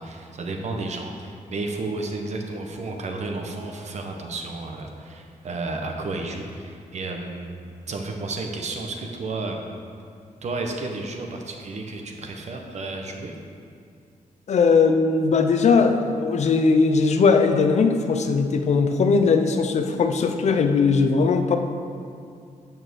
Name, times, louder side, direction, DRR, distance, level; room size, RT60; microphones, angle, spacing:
voice 1, 0.0-7.6 7.9-9.6 10.4-13.3, right 3 dB, 55° right, 3 dB, 1.1 m, -32 dB
voice 2, 14.5-21.6, left 4 dB, 55° left, 6 dB, 0.6 m, -19 dB
9.3 x 5.9 x 6.3 m, 2.4 s
wide cardioid pair, 170°, 14 cm